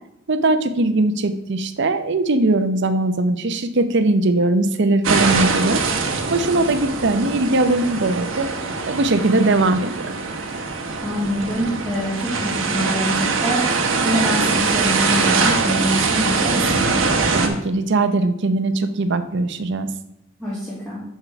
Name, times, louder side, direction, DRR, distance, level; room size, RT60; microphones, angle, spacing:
voice 1, 0.3-5.8 6.3-8.5 8.8-10.1 17.3-19.9, right 2 dB, 60° right, 9 dB, 0.7 m, -20 dB
sound 1, 5.0-17.5, right 4 dB, 80° right, 1.0 m, -22 dB
voice 2, 11.0-13.6 14.0-17.0 20.4-21.0, equal, 5° left, -9 dB, 1.9 m, -25 dB
6.9 x 5.6 x 4.5 m, 0.83 s
head